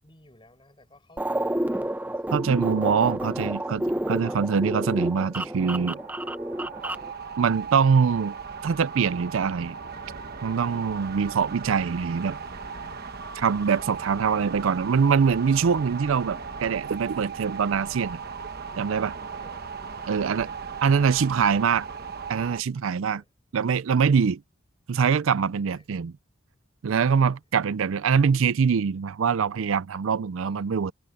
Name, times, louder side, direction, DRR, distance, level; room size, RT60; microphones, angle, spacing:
voice 1, 0.0-3.0 3.3-4.5 13.7-14.2 19.3-19.7 20.0-21.8 23.0-23.3 25.7-25.9 27.1-27.4 30.4-30.8, left 1 dB, 20° left, 6.4 m, -56 dB
sound 1, 1.2-7.1, right 1 dB, 5° right, 0.4 m, -30 dB
voice 2, 2.3-3.8 4.1-6.0 7.4-8.3 8.6-9.8 10.4-12.4 13.4-18.2 18.8-19.1 20.1-20.5 20.8-21.8 22.3-23.2 23.5-24.4 24.9-26.1 26.8-30.9, right 6 dB, 65° right, 0.4 m, -23 dB
sound 2, 5.3-22.6, right 5 dB, 45° right, 1.1 m, -37 dB
head